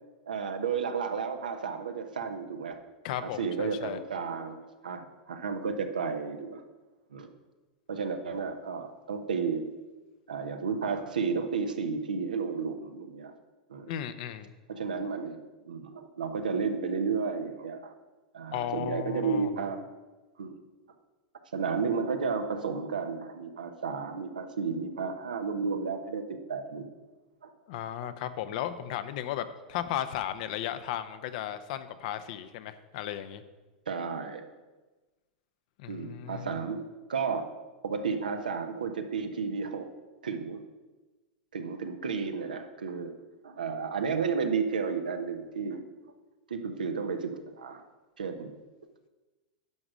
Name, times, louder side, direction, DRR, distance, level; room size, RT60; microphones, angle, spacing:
voice 1, 0.3-2.8 3.2-4.6 4.8-6.6 7.1-7.3 7.9-9.7 10.3-13.3 13.7-13.9 14.7-15.4 15.6-17.9 18.3-19.8 20.4-20.6 21.5-26.9 27.4-27.5 28.0-28.1 33.9-34.5 35.9-36.8 37.1-37.5 37.8-39.9 40.2-40.7 41.5-43.1 43.4-45.8 46.5-47.8 48.2-48.5, right 5 dB, 85° right, 6 dB, 1.0 m, -32 dB
voice 2, 3.0-4.0 13.9-14.5 18.5-19.5 27.7-33.4 35.8-36.6, left 11 dB, 60° left, 11 dB, 0.7 m, -35 dB
11.0 x 5.0 x 6.1 m, 1.2 s
hypercardioid pair, 100°, 4 cm